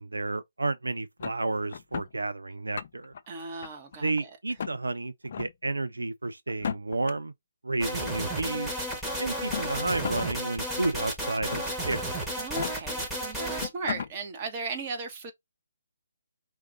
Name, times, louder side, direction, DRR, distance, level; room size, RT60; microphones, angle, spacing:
voice 1, 0.0-3.1 4.0-7.3 7.6-8.8 9.2-12.3, right 2 dB, 80° right, 0.5 m, -31 dB
sound 1, 1.2-2.1 2.6-3.2 3.6-4.2 4.6-4.8 5.3-5.5 6.5-7.1 8.2-8.3 9.3-10.3 10.7-10.8 11.5-11.9 12.4-12.7 13.3-13.4 13.6-14.1, left 7 dB, 50° left, 0.5 m, -35 dB
voice 2, 3.3-4.1 12.3-15.3, right 4 dB, 30° right, 1.3 m, -36 dB
sound 2, 7.8-13.7, right 1 dB, 5° right, 1.3 m, -33 dB
4.5 x 2.6 x 3.9 m
figure-of-eight pair, 145°, 0 cm